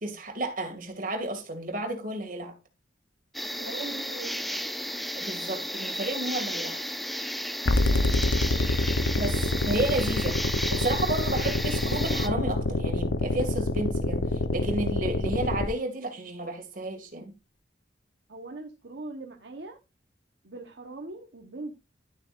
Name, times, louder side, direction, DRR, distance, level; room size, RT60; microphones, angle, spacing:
voice 1, 0.0-2.5 5.1-6.8 9.1-10.4 10.7-17.3, right 2 dB, 45° right, 2.2 m, -32 dB
sound 1, 3.3-12.3, equal, ahead, 0.5 m, -33 dB
voice 2, 3.6-4.5 18.3-19.8 20.4-21.7, right 2 dB, 65° right, 1.1 m, -40 dB
sound 2, 7.7-15.7, left 2 dB, 70° left, 0.8 m, -26 dB
12.0 x 7.4 x 2.5 m
head